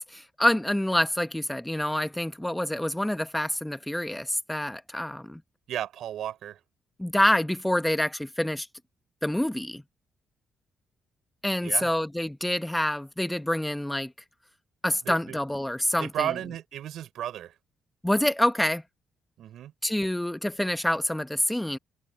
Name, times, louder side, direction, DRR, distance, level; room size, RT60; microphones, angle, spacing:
voice 1, 0.1-5.4 7.0-8.7 9.2-9.8 11.4-14.1 14.8-16.3 18.0-18.8 19.8-21.8, left 1 dB, 5° left, 0.9 m, -27 dB
voice 2, 5.7-6.6 11.6-11.9 15.0-15.4 16.0-17.5 19.4-19.7, right 11 dB, 75° right, 4.7 m, -34 dB
cardioid pair, 90°, 0 cm